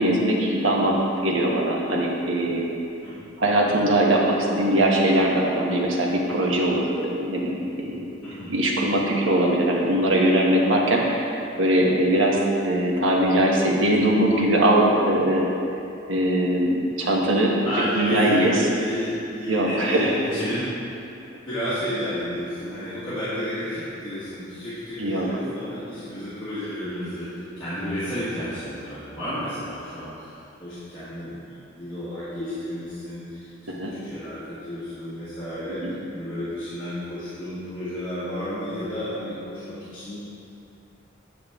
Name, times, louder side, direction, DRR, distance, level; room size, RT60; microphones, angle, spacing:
voice 1, 0.0-2.7 3.4-8.0 8.5-15.5 16.1-17.6 18.0-18.5 19.5-20.1 25.0-25.3 33.7-33.9 35.8-35.9, right 1 dB, 80° right, -2 dB, 1.2 m, -21 dB
voice 2, 17.6-20.7 21.5-40.2, equal, 25° left, -14 dB, 1.8 m, -31 dB
8.9 x 6.6 x 3.6 m, 2.7 s
head